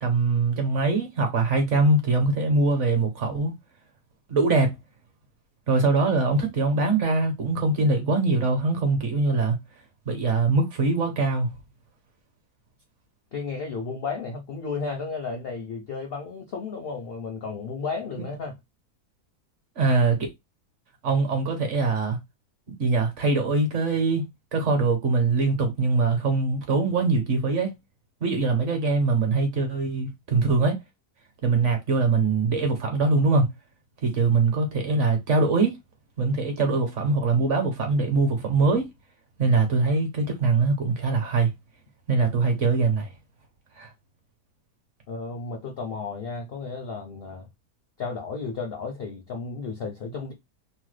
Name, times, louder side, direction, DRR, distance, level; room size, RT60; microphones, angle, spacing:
voice 1, 0.0-3.5 4.3-4.7 5.7-9.6 10.1-11.5 19.8-20.2 21.0-22.2 22.8-24.2 24.5-27.7 28.2-30.8 31.4-33.5 34.0-35.8 36.2-38.9 39.4-41.5 42.1-43.1 43.8-43.9, right 3 dB, 55° right, 1.0 m, -22 dB
voice 2, 13.3-18.5 45.1-47.5 48.0-50.3, left 4 dB, 65° left, 0.6 m, -33 dB
3.0 x 2.1 x 3.2 m
omnidirectional pair, 1.6 m